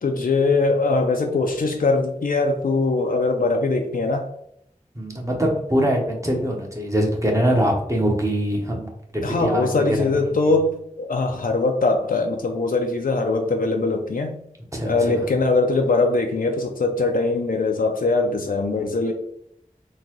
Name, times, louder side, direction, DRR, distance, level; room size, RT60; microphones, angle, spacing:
voice 1, 0.0-4.3 9.2-14.4 14.9-19.1, left 3 dB, 85° left, 3 dB, 0.4 m, -21 dB
voice 2, 4.9-10.5 14.7-15.2, equal, 20° right, 0 dB, 0.8 m, -23 dB
3.8 x 2.2 x 3.0 m, 0.72 s
wide cardioid pair, 40°, 14 cm